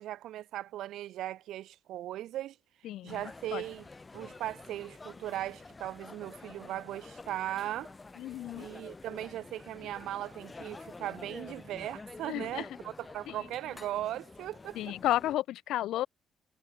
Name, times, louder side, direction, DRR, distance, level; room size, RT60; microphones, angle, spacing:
voice 1, 0.0-2.6 3.0-3.8 4.1-7.9 8.6-14.9, right 13 dB, 85° right, 1.4 m, -38 dB
voice 2, 2.8-3.2 3.5-3.6 8.2-8.7 12.3-12.7 14.7-16.1, left 14 dB, 85° left, 0.6 m, -32 dB
sound 1, 3.1-15.4, left 3 dB, 25° left, 7.9 m, -49 dB
cardioid pair, 90°, 0 cm